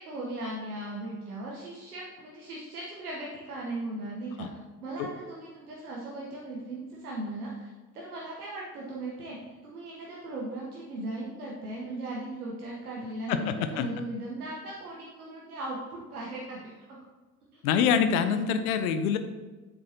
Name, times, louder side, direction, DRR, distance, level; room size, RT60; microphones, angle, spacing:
voice 1, 0.0-4.5 4.8-16.8 18.3-18.6, right 1 dB, 80° right, -4 dB, 1.1 m, -38 dB
voice 2, 13.3-13.9 17.6-19.2, left 7 dB, 70° left, 9 dB, 0.8 m, -25 dB
9.5 x 7.6 x 2.8 m, 1.3 s
figure-of-eight pair, 55°, 44 cm